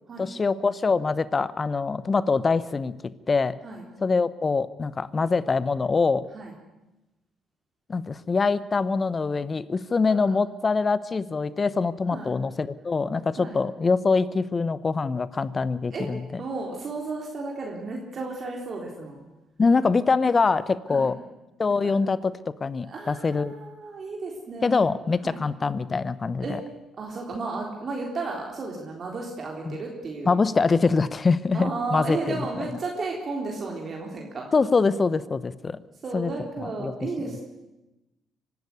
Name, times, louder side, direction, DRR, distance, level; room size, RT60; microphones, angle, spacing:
voice 1, 0.2-3.6 4.0-6.2 7.9-16.4 19.6-21.2 21.6-22.3 22.6-23.5 24.6-26.6 29.7-29.8 30.3-32.8 34.5-35.8 36.1-36.3 36.6-36.9, left 4 dB, 35° left, 17 dB, 0.9 m, -24 dB
voice 2, 16.4-19.2 20.9-21.1 21.8-21.9 22.9-24.8 25.2-25.4 26.4-26.6 27.0-30.3 31.5-34.5 36.0-37.4, right 3 dB, 50° right, -1 dB, 3.9 m, -33 dB
24.5 x 12.0 x 9.5 m, 1.0 s
hypercardioid pair, 50°, 0 cm